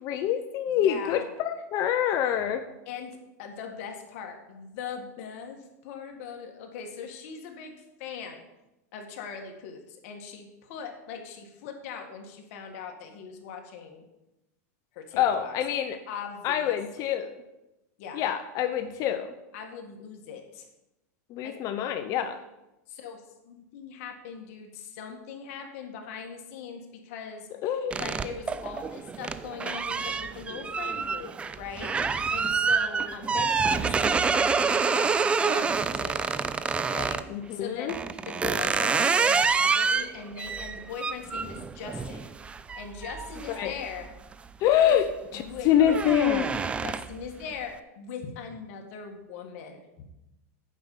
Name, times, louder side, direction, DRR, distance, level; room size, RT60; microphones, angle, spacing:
voice 1, 0.0-2.7 15.2-16.0 16.4-17.3 18.1-19.3 21.3-22.4 27.6-27.9 37.3-37.9 43.5-43.8 44.6-46.5, left 10 dB, 40° left, 8 dB, 0.7 m, -26 dB
voice 2, 0.7-1.2 2.9-3.1 3.4-7.7 8.0-8.4 8.9-14.0 14.9-15.5 16.1-17.2 18.0-18.2 19.5-20.7 21.4-21.5 22.9-27.5 27.9-31.3 31.6-36.3 36.9-38.0 38.2-42.3 42.7-44.1 44.9-45.0 45.3-45.7 46.8-47.7 48.0-49.8, left 6 dB, 55° left, 3 dB, 1.9 m, -40 dB
sound 1, 27.9-37.3 37.9-44.3 44.7-45.1 45.4-47.3, right 5 dB, 15° right, 0.3 m, -27 dB
9.5 x 5.4 x 7.2 m, 0.95 s
supercardioid pair, 145°, 9 cm